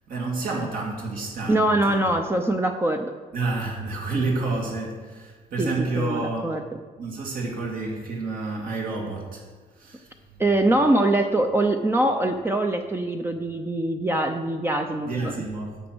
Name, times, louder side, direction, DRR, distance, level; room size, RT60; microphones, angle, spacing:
voice 1, 0.1-2.1 3.3-6.6 7.0-9.4 9.7-10.1 15.0-15.8, right 3 dB, 55° right, -2 dB, 2.7 m, -29 dB
voice 2, 1.5-3.1 5.6-6.6 10.4-15.3, right 1 dB, 15° right, 5 dB, 0.7 m, -23 dB
9.3 x 8.0 x 6.3 m, 1.4 s
cardioid pair, 110°, 17 cm